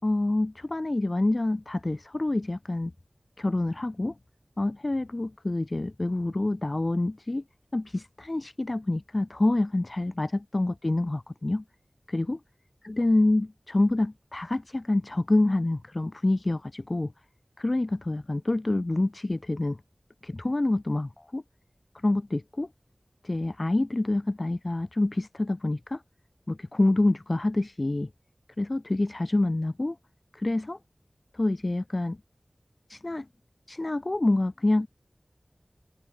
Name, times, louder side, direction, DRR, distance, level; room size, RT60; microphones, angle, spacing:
voice 1, 0.0-2.9 3.4-4.1 4.6-7.4 7.7-11.6 12.1-12.4 12.8-17.1 17.6-19.8 20.2-21.4 22.0-22.7 23.2-26.0 26.5-28.1 28.6-30.0 30.3-30.8 31.3-32.2 32.9-33.3 33.7-34.9, left 2 dB, 45° left, 6.6 m, -27 dB
wide cardioid pair, 60°, 0 cm